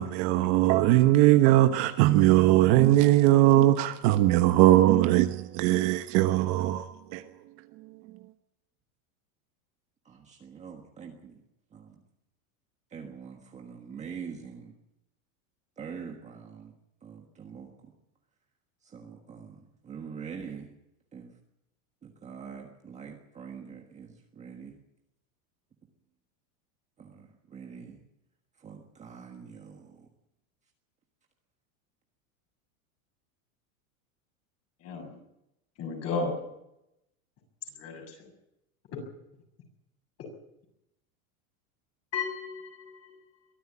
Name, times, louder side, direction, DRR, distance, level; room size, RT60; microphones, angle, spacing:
voice 1, 0.0-7.2, right 15 dB, 40° right, 1.1 m, -20 dB
voice 2, 10.0-11.4 11.7-11.9 12.9-14.7 15.8-16.7 17.0-17.7 18.8-20.7 21.1-21.3 22.0-24.8 27.0-28.0 28.6-30.1, right 6 dB, 15° right, 1.5 m, -44 dB
voice 3, 34.8-35.2 35.8-36.4 37.8-38.2 38.9-39.0 42.1-43.2, left 4 dB, 35° left, 6.9 m, -34 dB
23.0 x 14.0 x 8.6 m
supercardioid pair, 170°, 44 cm